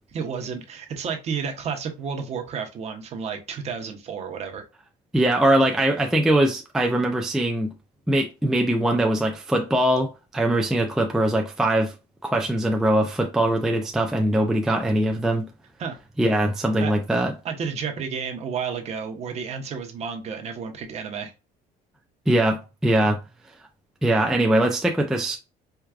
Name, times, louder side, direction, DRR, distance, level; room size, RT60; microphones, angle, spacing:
voice 1, 0.1-4.6 15.8-16.0 16.8-16.9 17.4-21.3, right 6 dB, 40° right, 0.8 m, -31 dB
voice 2, 5.1-7.7 8.1-11.9 12.2-15.5 16.2-17.3 22.3-23.2 24.0-25.4, right 1 dB, 5° right, 0.3 m, -22 dB
4.5 x 2.3 x 2.4 m
cardioid pair, 145°, 17 cm